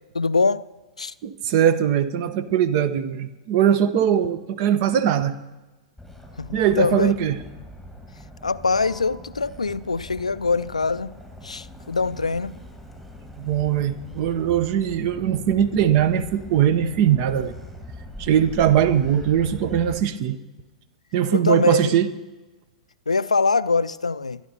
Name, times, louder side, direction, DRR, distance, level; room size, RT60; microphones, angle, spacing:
voice 1, 0.1-0.7 1.0-1.1 6.4-7.1 8.4-11.1 11.4-12.5 21.3-21.9 23.1-24.4, left 4 dB, 80° left, 0.3 m, -23 dB
voice 2, 1.2-5.4 6.5-7.4 13.4-17.5 18.2-20.4 21.1-22.1, right 9 dB, 45° right, 0.8 m, -21 dB
Motor vehicle (road), 6.0-20.0, left 1 dB, 5° right, 1.7 m, -41 dB
23.5 x 10.5 x 2.9 m
figure-of-eight pair, 105°, 3 cm